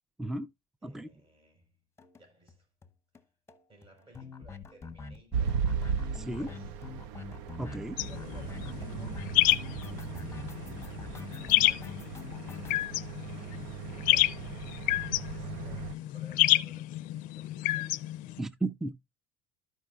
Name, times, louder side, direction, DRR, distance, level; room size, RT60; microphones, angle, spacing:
voice 1, 0.8-1.8 2.2-2.7 3.1-3.3 3.7-5.7 6.3-6.8 8.1-9.3 9.6-12.0 12.4-13.0 13.4-14.7 15.4-18.2, right 1 dB, 35° right, 5.5 m, -59 dB
sound 1, 2.0-2.2 2.5-2.6 2.8-2.9 3.1-3.2 3.5-12.8, left 5 dB, 15° left, 0.9 m, -45 dB
sound 2, 5.3-16.0, right 7 dB, 75° right, 0.6 m, -37 dB
voice 2, 6.1-6.5 7.6-8.0 18.4-18.9, right 2 dB, 5° right, 0.4 m, -34 dB
sound 3, 8.0-18.4, left 18 dB, 60° left, 0.5 m, -30 dB
13.0 x 5.4 x 2.4 m
supercardioid pair, 100°, 16 cm